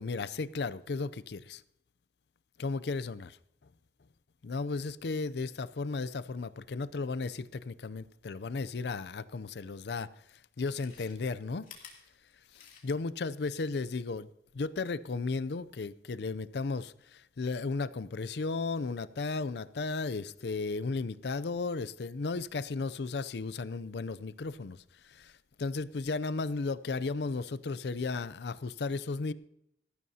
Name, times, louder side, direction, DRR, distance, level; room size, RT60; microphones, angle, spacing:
voice 1, 0.0-1.6 2.6-3.4 4.4-11.7 12.5-29.3, left 3 dB, 70° left, 0.5 m, -35 dB
Chewing mastication, 10.5-13.2 13.5-13.6, left 7 dB, 50° left, 2.8 m, -54 dB
18.0 x 14.0 x 2.8 m
head